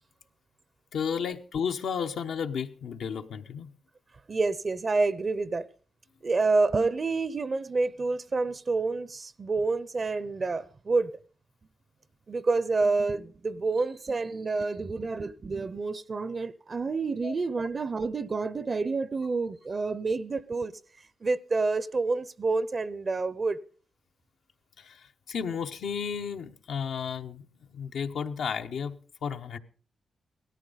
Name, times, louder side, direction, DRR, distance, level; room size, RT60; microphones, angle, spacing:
voice 1, 0.9-3.7 17.2-17.3 24.8-29.6, left 7 dB, 80° left, 0.9 m, -33 dB
voice 2, 4.3-5.7 6.2-11.2 12.3-20.7 21.2-23.6, right 3 dB, 40° right, 0.6 m, -28 dB
17.5 x 13.5 x 3.9 m
cardioid pair, 75°, 0 cm